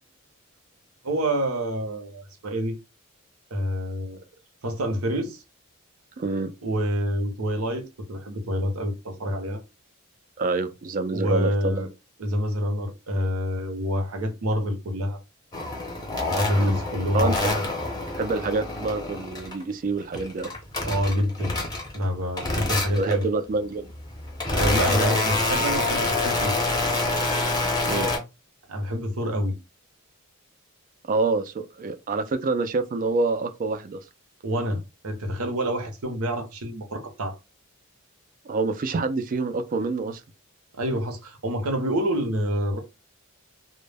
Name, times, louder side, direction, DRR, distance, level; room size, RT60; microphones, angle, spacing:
voice 1, 1.0-2.7 3.5-4.2 4.6-5.4 6.6-9.6 11.1-11.9 12.2-15.2 16.3-17.3 20.8-21.6 21.9-23.3 24.5-26.5 28.7-29.6 34.4-37.3 40.8-42.8, equal, 75° right, 0.7 m, -27 dB
voice 2, 6.2-6.5 10.4-11.9 16.5-16.8 17.1-17.7 18.1-20.5 23.0-23.9 27.9-28.1 31.1-34.0 38.5-40.2, right 3 dB, 40° right, 0.3 m, -27 dB
sound 1, 15.5-19.6 20.0-22.0 22.4-23.2 23.9-28.2, left 2 dB, 20° left, 0.6 m, -26 dB
2.1 x 2.0 x 3.3 m
head